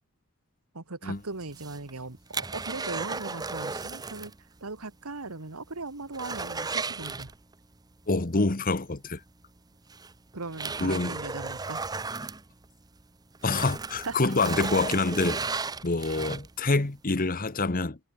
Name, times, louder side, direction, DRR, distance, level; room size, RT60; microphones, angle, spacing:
voice 1, 0.7-4.3 4.6-7.3 10.3-11.8 14.0-14.3 16.7-16.8, right 3 dB, 75° right, 1.8 m, -38 dB
sound 1, 1.4-4.4 4.7-4.8 5.2-5.3 5.7-7.7 9.1-9.2 9.9-13.0 13.3-16.7 17.2-17.3, right 4 dB, 15° right, 0.7 m, -35 dB
voice 2, 8.1-9.2 10.8-11.2 13.4-15.4 15.8-18.0, left 3 dB, 40° left, 1.2 m, -26 dB
head